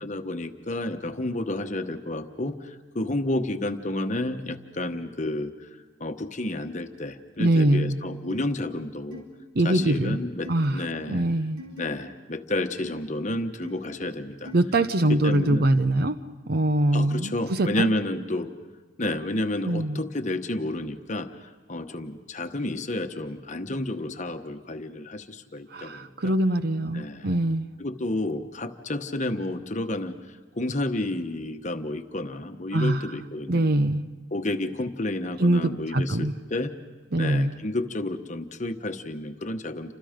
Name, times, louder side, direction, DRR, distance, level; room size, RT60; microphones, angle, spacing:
voice 1, 0.0-5.7 6.0-9.2 9.6-11.2 11.8-14.5 15.1-15.7 16.9-18.5 19.0-26.4 26.9-27.3 27.8-33.7 34.3-36.7 37.2-39.9, left 1 dB, 35° left, 7 dB, 1.1 m, -31 dB
voice 2, 7.4-8.0 9.5-10.2 10.5-10.8 11.1-11.6 14.5-16.2 16.5-17.9 19.7-20.0 25.7-27.7 32.7-33.1 33.5-34.0 35.4-36.3 37.1-37.5, right 1 dB, 50° right, 11 dB, 0.7 m, -23 dB
sound 1, 8.3-8.5 9.1-9.2 9.8-9.9 10.4-10.7 11.6-11.8 12.8-12.9 13.6-13.8 14.5-14.6 15.3-15.5, equal, 90° right, 5.0 m, -42 dB
29.5 x 26.0 x 5.2 m, 1.3 s
head